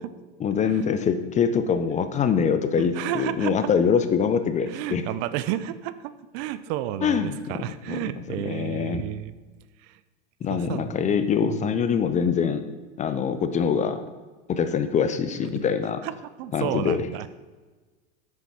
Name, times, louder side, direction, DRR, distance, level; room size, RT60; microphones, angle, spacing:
voice 1, 0.4-5.0 7.0-7.4 7.9-8.0 8.4-9.0 10.4-12.7 13.0-14.0 14.5-16.0 16.5-17.0, left 7 dB, 20° left, 10 dB, 0.5 m, -24 dB
voice 2, 2.8-3.7 4.7-9.3 9.8-10.0 10.5-10.9 11.4-11.8 16.0-16.1 16.4-17.3, right 13 dB, 50° right, 14 dB, 0.5 m, -31 dB
7.0 x 6.9 x 4.6 m, 1.3 s
supercardioid pair, 115°, 34 cm